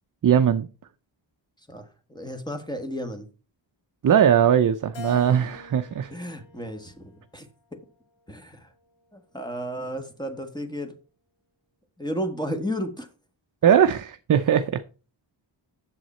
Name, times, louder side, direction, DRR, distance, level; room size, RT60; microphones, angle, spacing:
voice 1, 0.2-0.7 4.0-6.1 13.6-14.8, right 9 dB, 45° right, 0.5 m, -20 dB
voice 2, 1.7-3.2 6.1-7.8 8.3-8.7 9.1-10.9 12.0-13.1 13.7-13.8, equal, 10° left, 1.4 m, -33 dB
Keyboard (musical), 4.9-7.4 8.0-9.2, left 5 dB, 70° left, 1.8 m, -45 dB
7.8 x 7.3 x 4.2 m
wide cardioid pair, 110°, 46 cm